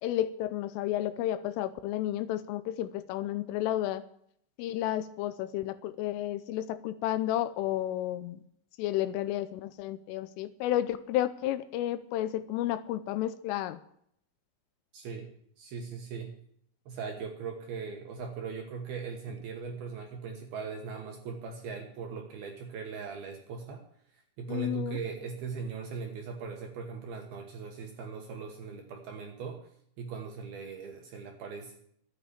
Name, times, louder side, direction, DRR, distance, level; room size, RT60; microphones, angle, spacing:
voice 1, 0.0-4.0 4.6-8.4 8.8-13.8 24.5-25.0, left 13 dB, 80° left, 13 dB, 3.1 m, -32 dB
voice 2, 14.9-15.3 15.6-16.4 16.9-23.8 24.1-29.7 30.0-31.8, right 5 dB, 65° right, 3 dB, 2.5 m, -39 dB
12.5 x 8.9 x 8.5 m, 0.68 s
omnidirectional pair, 5.9 m